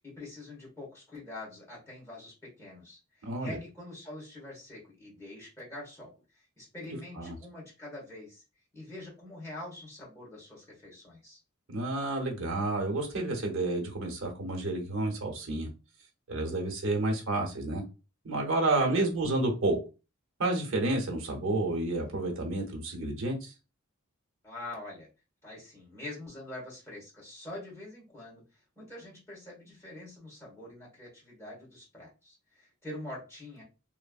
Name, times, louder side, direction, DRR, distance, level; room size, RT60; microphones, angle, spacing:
voice 1, 0.0-8.4 8.7-11.4 18.7-19.0 24.4-25.1 25.4-33.6, left 2 dB, 15° left, -4 dB, 1.5 m, -45 dB
voice 2, 3.2-3.5 7.2-7.3 11.7-15.7 16.3-17.8 18.2-19.8 20.4-23.5, right 2 dB, 70° right, 1 dB, 0.9 m, -30 dB
3.2 x 2.0 x 2.3 m, 0.31 s
head